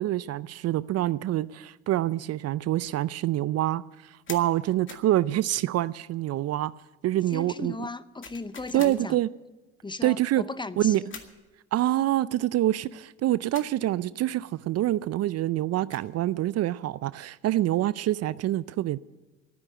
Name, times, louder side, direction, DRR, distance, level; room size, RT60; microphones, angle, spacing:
voice 1, 0.0-6.7 7.0-7.7 8.7-9.3 10.0-10.4 10.8-11.0 11.7-19.0, right 14 dB, 50° right, 0.5 m, -26 dB
sound 1, 4.3-4.5 4.9-5.1 8.2-9.0 11.1-11.4 13.5-13.8 15.6-16.1, left 5 dB, 35° left, 2.2 m, -43 dB
voice 2, 7.1-9.2 9.8-11.1, left 3 dB, 15° left, 0.6 m, -37 dB
13.5 x 9.8 x 8.9 m
hypercardioid pair, 70°, 33 cm